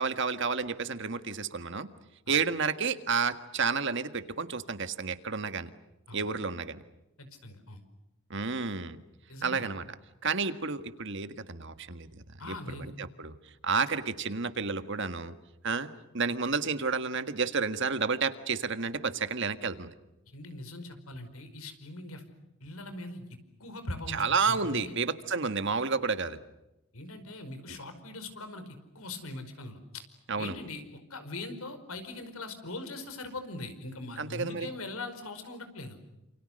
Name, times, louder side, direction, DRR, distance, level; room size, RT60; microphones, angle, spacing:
voice 1, 0.0-1.9 2.3-5.7 6.1-6.8 8.3-9.0 9.4-9.9 10.2-13.4 13.6-15.3 15.6-19.9 24.1-26.4 27.7-27.8 30.3-30.6 34.2-34.7, right 5 dB, 55° right, 10 dB, 1.7 m, -31 dB
voice 2, 7.2-7.8 9.3-9.8 12.4-12.9 20.3-22.2 22.6-23.3 23.6-25.0 26.9-30.0 30.4-36.0, left 2 dB, 80° left, 9 dB, 5.1 m, -41 dB
29.0 x 28.0 x 6.6 m, 0.94 s
head